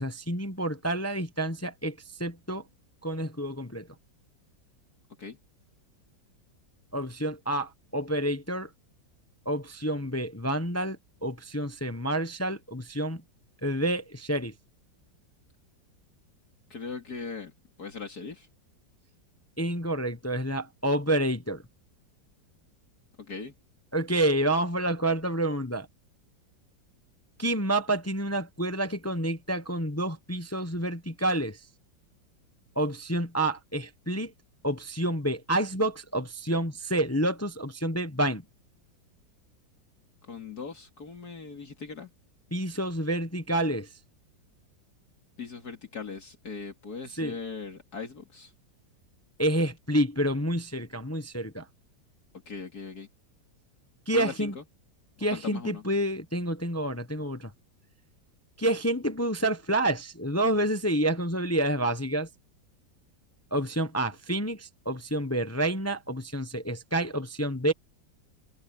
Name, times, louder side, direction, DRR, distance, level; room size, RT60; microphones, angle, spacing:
voice 1, 0.0-2.6 3.0-3.9 6.9-8.7 9.4-13.2 13.6-14.5 19.6-21.6 23.9-25.9 27.4-31.6 32.8-34.3 34.6-38.4 42.5-43.9 47.1-47.3 49.4-51.7 54.1-54.5 55.2-57.5 58.6-62.3 63.5-67.7, right 1 dB, 15° left, 0.6 m, -28 dB
voice 2, 16.7-17.5 17.8-18.5 23.2-23.5 40.2-42.1 45.4-48.5 52.5-53.1 54.1-54.6 55.3-55.8, left 5 dB, 55° left, 2.9 m, -39 dB
omnidirectional pair, 2.0 m